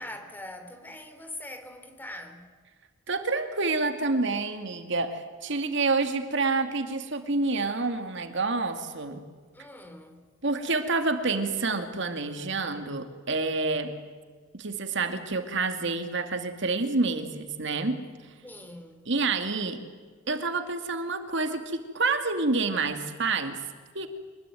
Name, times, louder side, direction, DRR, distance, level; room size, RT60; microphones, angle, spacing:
voice 1, 0.0-2.5 9.5-10.2 18.4-19.0, left 1 dB, 10° left, 6 dB, 3.4 m, -42 dB
voice 2, 3.1-9.2 10.4-13.9 14.5-18.0 19.1-19.8 20.3-23.6 23.9-24.1, right 3 dB, 65° right, 7 dB, 2.3 m, -28 dB
25.5 x 21.0 x 9.3 m, 1.5 s
head